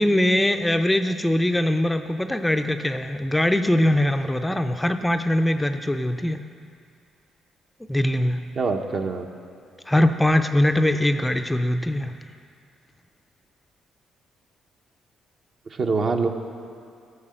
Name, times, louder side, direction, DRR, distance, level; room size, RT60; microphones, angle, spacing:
voice 1, 0.0-6.4 7.9-8.5 9.9-12.2, left 1 dB, 10° left, 7 dB, 0.4 m, -22 dB
voice 2, 8.6-9.3 15.8-16.3, right 4 dB, 50° right, 4 dB, 0.9 m, -24 dB
13.0 x 5.8 x 7.7 m, 2.4 s
cardioid pair, 90°, 0 cm